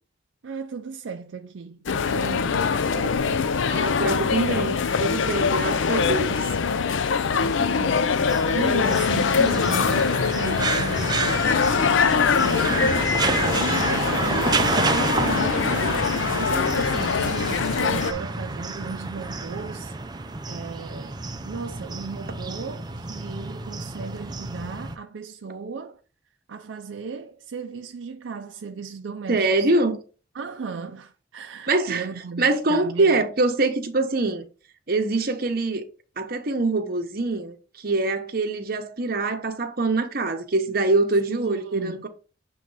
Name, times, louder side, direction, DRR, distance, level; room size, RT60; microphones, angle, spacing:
voice 1, 0.4-3.5 5.5-5.9 6.3-6.6 7.3-11.6 11.8-26.0 26.5-29.7 30.3-33.2 41.3-42.1, right 5 dB, 75° right, 0.4 m, -36 dB
sound 1, 1.9-18.1, left 5 dB, 80° left, 0.5 m, -23 dB
voice 2, 3.7-6.3 29.3-30.0 31.7-32.1 32.4-34.5 34.9-35.9 36.2-42.1, right 2 dB, 50° right, 0.9 m, -24 dB
sound 2, 8.3-25.0, right 3 dB, 20° right, 0.5 m, -29 dB
7.4 x 3.2 x 4.0 m
head